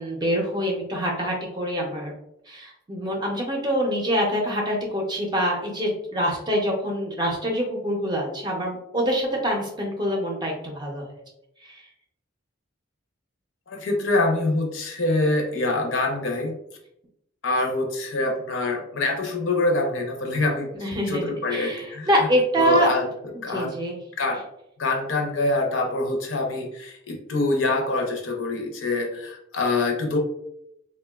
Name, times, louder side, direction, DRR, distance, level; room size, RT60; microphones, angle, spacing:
voice 1, 0.0-2.1 2.5-11.2 11.6-11.8 20.7-22.9 23.5-24.0, equal, 20° right, 0 dB, 0.5 m, -25 dB
voice 2, 13.7-16.6 17.4-20.7 21.1-22.1 22.6-23.1 23.4-23.8 24.2-24.4 24.8-30.2, left 2 dB, 70° left, 2 dB, 0.6 m, -25 dB
3.5 x 2.2 x 2.2 m, 0.79 s
head